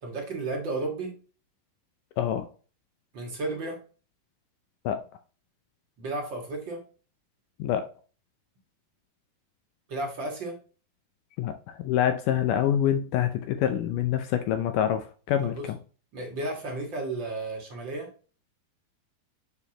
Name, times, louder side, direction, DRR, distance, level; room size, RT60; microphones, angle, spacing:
voice 1, 0.0-1.1 3.1-3.8 6.0-6.8 9.9-10.6 15.4-15.7 16.1-18.1, right 2 dB, 45° right, 1.7 m, -33 dB
voice 2, 2.2-2.5 4.9-5.0 7.6-7.9 11.4-15.8, left 10 dB, 85° left, 1.8 m, -26 dB
7.1 x 6.8 x 2.9 m
omnidirectional pair, 4.5 m